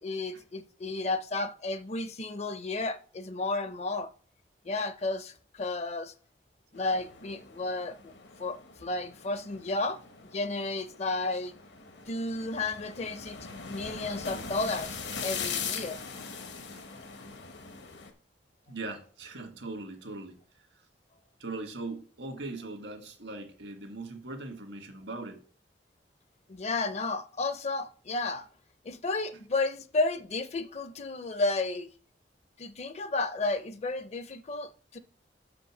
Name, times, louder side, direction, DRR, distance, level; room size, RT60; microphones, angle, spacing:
voice 1, 0.0-4.1 4.6-6.1 6.7-8.1 8.4-10.0 10.3-11.5 12.1-13.4 13.7-16.0 26.5-28.5 28.8-31.9 32.6-35.0, left 3 dB, 35° left, 0.5 m, -32 dB
sound 1, 6.8-18.1, left 5 dB, 75° left, 1.1 m, -41 dB
voice 2, 18.7-20.4 21.4-25.4, right 2 dB, 80° right, 1.7 m, -40 dB
6.1 x 5.2 x 5.9 m
head